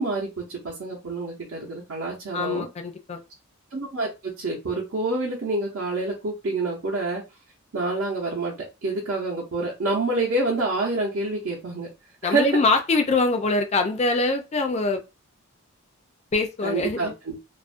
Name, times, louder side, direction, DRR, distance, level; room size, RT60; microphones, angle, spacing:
voice 1, 0.0-2.7 3.7-7.2 7.7-8.6 8.8-11.9 12.2-12.6 16.6-17.3, right 2 dB, 60° right, -5 dB, 0.7 m, -27 dB
voice 2, 2.3-3.2 12.2-15.0 16.3-17.1, left 3 dB, 30° left, 6 dB, 0.3 m, -23 dB
2.4 x 2.1 x 2.4 m, 0.25 s
head